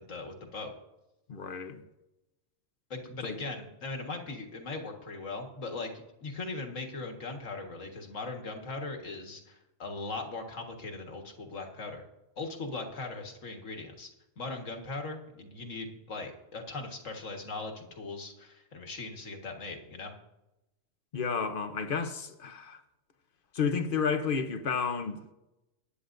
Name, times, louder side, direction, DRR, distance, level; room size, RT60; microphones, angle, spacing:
voice 1, 0.1-0.7 2.9-5.9 6.2-12.0 12.4-14.1 14.4-20.1, left 3 dB, 75° left, 2.0 m, -39 dB
voice 2, 1.3-1.8 3.2-3.4 21.1-22.8 23.5-25.3, left 5 dB, 45° left, 1.0 m, -31 dB
20.5 x 9.9 x 2.6 m
omnidirectional pair, 1.3 m